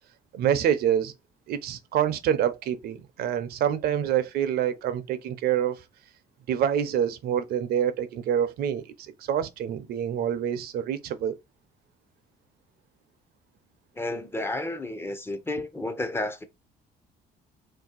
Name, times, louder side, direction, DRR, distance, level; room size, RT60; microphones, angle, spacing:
voice 1, 0.3-1.1 1.5-5.8 6.5-8.9 9.2-11.4, right 9 dB, 65° right, 0.5 m, -26 dB
voice 2, 14.0-16.4, left 2 dB, 15° left, 0.4 m, -31 dB
2.7 x 2.3 x 3.8 m
cardioid pair, 110°, 17 cm